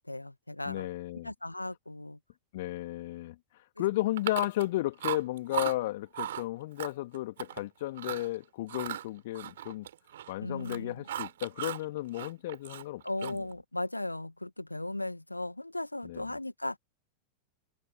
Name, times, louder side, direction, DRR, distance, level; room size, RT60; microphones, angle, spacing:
voice 1, 0.0-0.9 1.2-2.2 10.4-11.0 13.0-16.8, left 1 dB, 85° left, 1.9 m, -37 dB
voice 2, 0.7-1.3 2.5-3.4 3.8-9.9 10.3-13.4 16.0-16.3, left 17 dB, 55° left, 2.3 m, -34 dB
Chewing mastication, 4.2-4.7 5.0-5.7 6.1-6.4 6.8-7.6 7.9-8.3 8.7-10.3 10.6-11.8 12.1-13.5, right 11 dB, 60° right, 5.4 m, -37 dB
figure-of-eight pair, 90°, 0 cm